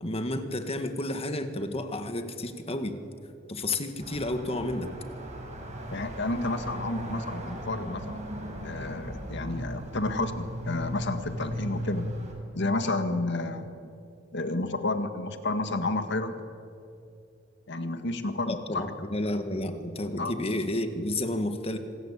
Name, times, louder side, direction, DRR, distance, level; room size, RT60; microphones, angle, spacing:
voice 1, 0.0-3.1 3.5-4.9 18.5-21.8, left 1 dB, 30° left, 7 dB, 1.8 m, -31 dB
sound 1, 4.0-12.3, equal, 35° right, 6.1 m, -37 dB
voice 2, 5.9-8.2 8.6-12.1 12.5-13.9 14.3-16.4 17.7-18.8 20.2-20.3, left 2 dB, 60° left, 8 dB, 1.9 m, -31 dB
26.0 x 19.5 x 8.4 m, 2.6 s
head